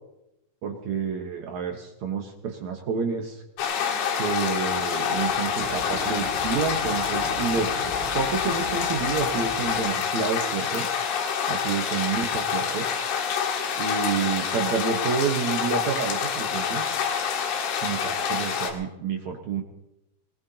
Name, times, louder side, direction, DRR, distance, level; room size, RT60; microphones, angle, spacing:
voice 1, 0.6-3.4 4.2-7.7 8.1-10.9 11.5-12.9 13.8-16.8 17.8-19.6, right 6 dB, 70° right, 1 dB, 1.7 m, -29 dB
sound 1, 3.6-18.7, left 7 dB, 80° left, 4.1 m, -27 dB
Run, 4.2-9.8, left 1 dB, 15° left, 3.4 m, -38 dB
21.5 x 21.0 x 2.9 m, 0.88 s
omnidirectional pair, 5.3 m